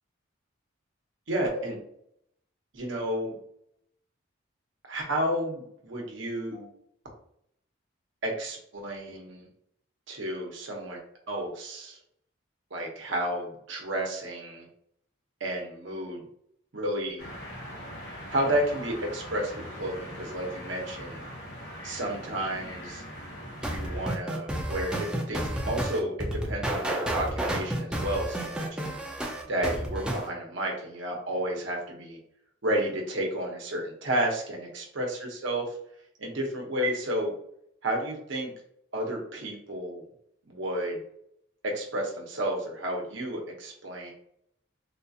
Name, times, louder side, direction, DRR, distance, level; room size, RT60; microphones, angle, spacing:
voice 1, 1.3-1.8 2.7-3.4 4.9-6.7 8.2-9.5 10.1-11.0 11.3-12.0 12.7-14.7 15.4-16.3 16.7-17.3 18.3-21.3 21.8-23.0 23.6-29.0 29.5-32.2 32.6-35.6 36.2-37.3 37.8-38.5 38.9-40.0 40.5-41.0 41.6-44.1, right 1 dB, 70° right, 0 dB, 0.9 m, -31 dB
sound 1, 17.2-24.1, equal, 75° left, 1.5 m, -41 dB
sound 2, 23.6-30.3, right 1 dB, 5° right, 0.4 m, -31 dB
3.7 x 2.4 x 2.7 m, 0.71 s
head